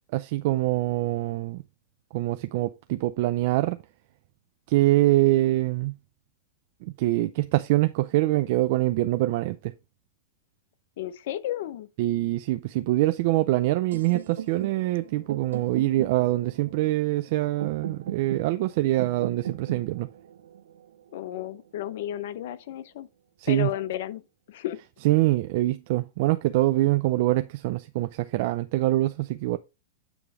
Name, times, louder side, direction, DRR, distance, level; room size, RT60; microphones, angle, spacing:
voice 1, 0.1-1.6 2.1-3.8 4.7-5.9 6.8-9.7 12.0-20.1 23.4-23.7 25.0-29.6, right 17 dB, 55° right, 0.4 m, -24 dB
voice 2, 11.0-11.9 21.1-23.1 23.5-24.2 24.5-24.8, left 12 dB, 65° left, 0.8 m, -32 dB
sound 1, 13.9-21.8, right 10 dB, 90° right, 0.8 m, -39 dB
9.1 x 3.2 x 4.8 m
hypercardioid pair, 135°, 0 cm